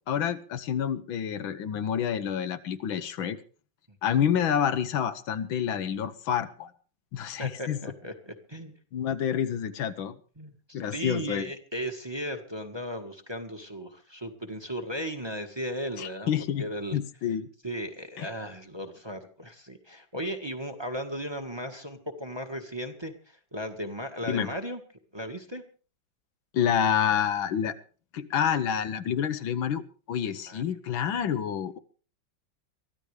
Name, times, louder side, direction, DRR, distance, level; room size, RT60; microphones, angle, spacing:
voice 1, 0.1-3.4 4.0-6.7 7.1-7.8 8.9-10.2 10.7-11.5 16.0-16.7 16.9-17.5 18.2-18.3 24.3-24.5 26.5-27.8 28.1-31.8, left 8 dB, 85° left, 11 dB, 1.8 m, -28 dB
voice 2, 7.4-8.7 10.4-16.3 16.6-17.0 17.6-24.8 25.1-25.6 30.2-30.6, equal, 15° right, 6 dB, 1.5 m, -36 dB
23.5 x 14.5 x 3.4 m, 0.39 s
omnidirectional pair, 2.1 m